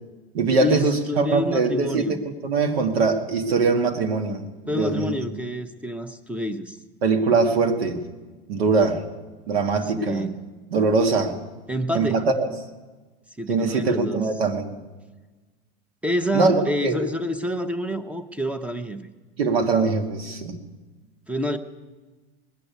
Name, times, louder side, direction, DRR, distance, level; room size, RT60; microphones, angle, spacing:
voice 1, 0.3-4.4 4.7-5.4 7.0-8.0 8.5-9.0 9.5-10.3 10.7-11.3 11.9-12.5 13.5-14.7 16.3-16.5 16.8-17.0 19.4-20.6, right 4 dB, 85° right, 5 dB, 1.8 m, -22 dB
voice 2, 1.1-2.2 4.7-6.8 10.0-10.5 11.7-12.2 13.4-14.2 16.0-19.1 21.3-21.6, equal, 5° right, 10 dB, 0.9 m, -27 dB
20.0 x 6.8 x 9.2 m, 1.3 s
hypercardioid pair, 115°, 30 cm